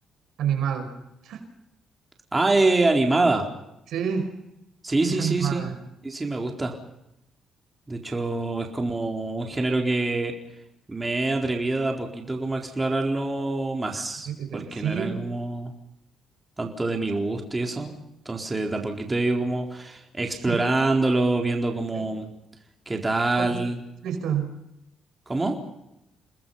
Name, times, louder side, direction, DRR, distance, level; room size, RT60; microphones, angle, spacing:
voice 1, 0.4-0.9 1.2-1.4 3.9-4.3 5.0-5.7 14.3-15.2 20.5-20.6 21.9-22.0 23.4-23.6 24.0-24.5, right 8 dB, 75° right, 7 dB, 5.1 m, -28 dB
voice 2, 2.3-3.5 4.8-5.7 6.0-6.8 7.9-10.3 10.9-14.3 14.5-15.7 16.6-18.0 18.3-22.3 22.9-23.8 25.3-25.6, right 2 dB, 20° right, 2 dB, 4.1 m, -25 dB
29.5 x 20.5 x 5.7 m, 0.86 s
cardioid pair, 90°, 0 cm